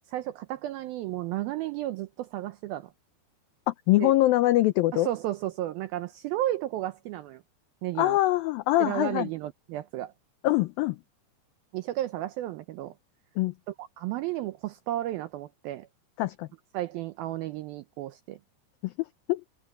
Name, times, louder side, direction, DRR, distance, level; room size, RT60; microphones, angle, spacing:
voice 1, 0.1-2.9 4.0-4.1 4.9-7.4 7.8-8.2 8.8-10.1 11.7-12.9 13.7-15.9 16.7-18.4, right 14 dB, 80° right, 2.1 m, -33 dB
voice 2, 3.7-5.1 8.0-9.3 10.4-11.0 13.4-13.5 16.2-16.5 18.8-18.9 19.3-19.4, left 16 dB, 90° left, 2.0 m, -23 dB
omnidirectional pair, 5.0 m